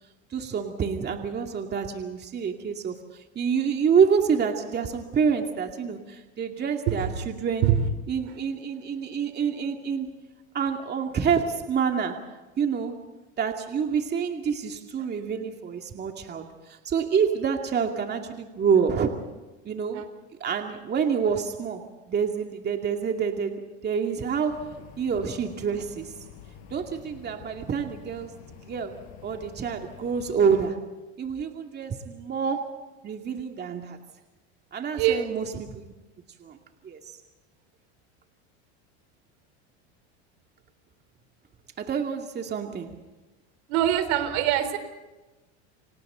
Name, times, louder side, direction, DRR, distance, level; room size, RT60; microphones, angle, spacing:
voice 1, 0.3-7.7 8.1-10.1 10.5-12.3 12.6-13.0 13.4-19.2 19.7-20.0 20.4-24.7 25.0-26.1 26.7-28.3 28.6-28.9 29.2-30.8 31.2-32.7 33.0-34.0 34.7-35.9 36.4-36.6 36.8-37.0 41.8-43.0, right 6 dB, 30° right, 3 dB, 2.4 m, -27 dB
sound 1, 24.5-30.7, left 9 dB, 55° left, 5.4 m, -48 dB
voice 2, 34.9-35.3 43.7-44.8, right 11 dB, 70° right, 10 dB, 3.8 m, -23 dB
29.5 x 25.0 x 3.9 m, 1.1 s
supercardioid pair, 115°, 34 cm